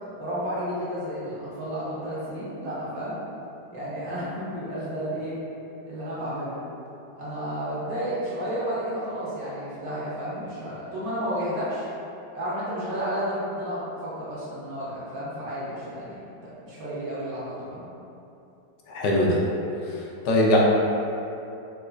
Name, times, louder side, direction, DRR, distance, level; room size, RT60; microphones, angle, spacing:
voice 1, 0.2-3.2 3.7-5.4 5.9-6.5 7.2-11.9 12.3-17.8, equal, 65° right, -9 dB, 1.1 m, -32 dB
voice 2, 18.9-19.4 20.2-20.6, left 1 dB, 80° left, -3 dB, 1.2 m, -20 dB
4.2 x 2.3 x 2.3 m, 2.9 s
omnidirectional pair, 1.9 m